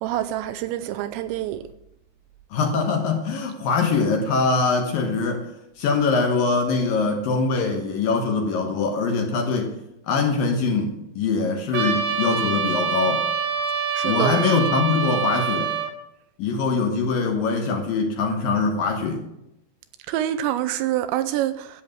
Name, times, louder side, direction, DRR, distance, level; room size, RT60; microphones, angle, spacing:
voice 1, 0.0-1.6 14.0-14.4 20.1-21.7, right 12 dB, 80° right, 2.7 m, -26 dB
voice 2, 2.5-5.5 5.8-9.7 10.1-13.2 14.0-15.7 16.4-19.2, left 4 dB, 70° left, 2.3 m, -23 dB
Trumpet, 11.7-15.9, right 6 dB, 60° right, 2.4 m, -25 dB
13.5 x 9.2 x 6.4 m
omnidirectional pair, 5.4 m